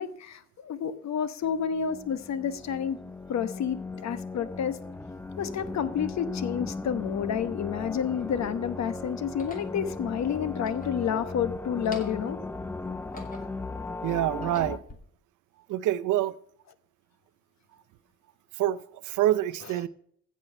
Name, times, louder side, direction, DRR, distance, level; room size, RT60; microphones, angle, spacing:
voice 1, 0.0-3.0 3.3-4.8 5.4-12.4, left 8 dB, 65° left, 1.1 m, -30 dB
sound 1, 1.4-14.8, left 3 dB, 10° left, 0.5 m, -37 dB
sound 2, 7.7-8.5 9.2-9.7 10.5-11.4 11.7-12.4 12.8-13.7 14.2-15.0, left 1 dB, 30° left, 2.6 m, -48 dB
voice 2, 14.0-14.8 15.7-16.3 18.5-19.9, right 13 dB, 80° right, 0.6 m, -26 dB
15.5 x 5.6 x 5.4 m
cardioid pair, 90°, 30 cm